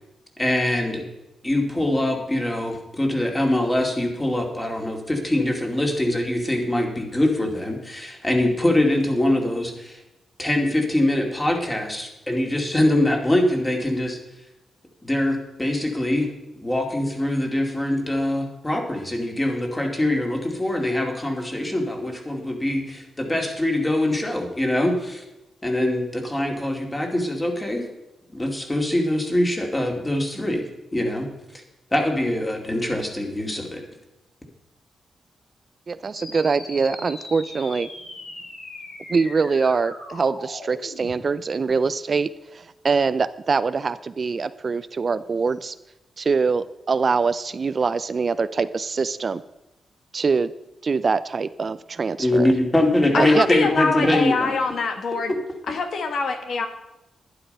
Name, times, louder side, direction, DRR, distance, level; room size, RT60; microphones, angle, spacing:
voice 1, 0.4-1.0 1.4-10.0 10.4-14.2 15.0-16.3 16.6-25.2 25.6-27.9 28.3-30.7 30.9-31.3 31.9-33.8 52.2-54.5 55.3-55.4, left 1 dB, 15° left, 2 dB, 2.5 m, -23 dB
voice 2, 35.9-37.9 39.1-45.7 46.2-49.4 50.1-50.5 50.8-52.5 53.1-53.5 54.0-54.2, right 4 dB, 45° right, 14 dB, 0.4 m, -23 dB
sound 1, 36.1-41.1, left 2 dB, 85° left, 2.9 m, -39 dB
voice 3, 53.1-55.3 55.7-56.7, left 4 dB, 65° left, 6 dB, 1.3 m, -24 dB
11.5 x 10.5 x 5.4 m, 0.96 s
cardioid pair, 100°, 0 cm